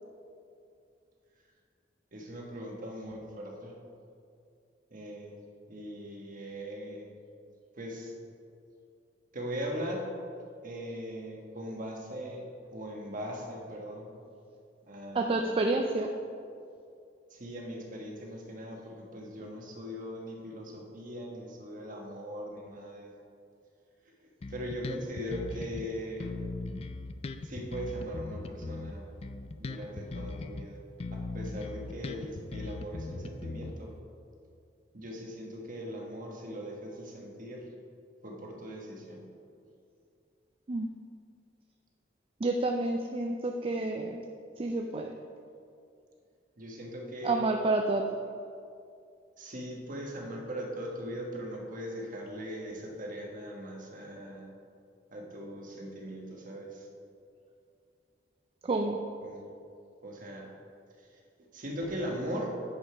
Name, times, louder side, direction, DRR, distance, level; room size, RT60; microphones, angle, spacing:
voice 1, 2.1-3.8 4.9-5.4 5.7-7.1 7.8-8.1 9.3-10.1 10.6-14.1 14.9-15.7 17.3-23.1 24.5-26.3 27.4-29.0 29.6-30.8 31.1-33.9 34.9-37.7 38.2-39.2 46.6-47.4 49.4-54.5 55.1-56.9 59.2-59.4 60.0-60.5 61.5-62.5, equal, 45° right, 0 dB, 1.3 m, -40 dB
voice 2, 15.1-16.1 40.7-40.9 42.4-44.2 44.6-45.1 47.2-48.0 58.6-59.0, right 2 dB, 30° right, 3 dB, 0.4 m, -29 dB
Bass guitar, 24.4-25.9 26.2-30.7 31.0-34.0, left 3 dB, 35° left, 0.4 m, -39 dB
9.8 x 5.3 x 5.0 m, 2.4 s
head